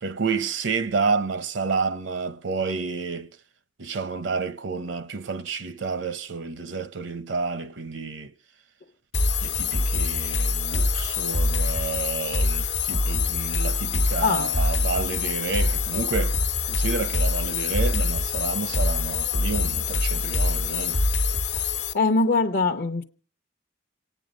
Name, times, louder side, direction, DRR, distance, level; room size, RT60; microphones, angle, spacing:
voice 1, 0.0-3.3 3.8-8.3 9.4-16.4 16.7-21.0, right 4 dB, 70° right, 0.7 m, -30 dB
sound 1, 9.1-21.9, left 3 dB, 80° left, 1.1 m, -25 dB
voice 2, 21.5-23.0, left 3 dB, 60° left, 0.8 m, -23 dB
27.5 x 9.2 x 5.1 m
head